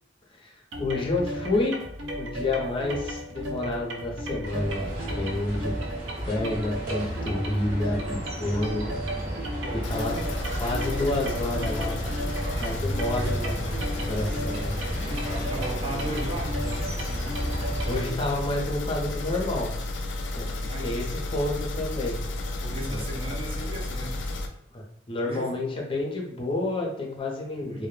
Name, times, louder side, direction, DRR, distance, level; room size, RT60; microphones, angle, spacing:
voice 1, 0.3-1.8 2.2-5.7 6.3-9.0 9.8-10.2 10.6-12.0 12.6-13.6 14.1-14.8 17.6-19.7 20.3-20.5 20.8-22.2 22.9-23.0 24.7-27.9, left 2 dB, 30° left, -1 dB, 0.6 m, -29 dB
sound 1, 0.7-18.2, equal, 85° right, 0.4 m, -35 dB
sound 2, 4.4-18.0, equal, 50° right, 1.1 m, -33 dB
voice 2, 9.6-10.3 12.5-12.7 13.1-13.3 14.9-16.5 20.5-21.1 22.6-24.2 25.2-25.5 27.6-27.9, right 1 dB, 30° right, -2 dB, 0.6 m, -36 dB
sound 3, 9.8-24.5, left 2 dB, 85° left, 0.4 m, -33 dB
2.1 x 2.0 x 3.1 m, 0.72 s
head